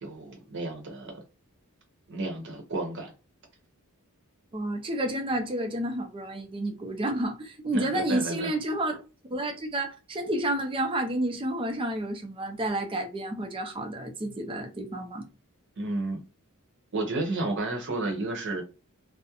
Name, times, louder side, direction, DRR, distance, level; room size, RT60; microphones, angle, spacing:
voice 1, 0.0-1.2 2.1-3.1 7.7-8.5 15.8-16.2 16.9-18.6, right 2 dB, 55° right, 0.8 m, -32 dB
voice 2, 4.5-9.0 9.3-15.2, right 1 dB, 25° right, 0.4 m, -30 dB
2.3 x 2.0 x 2.8 m
head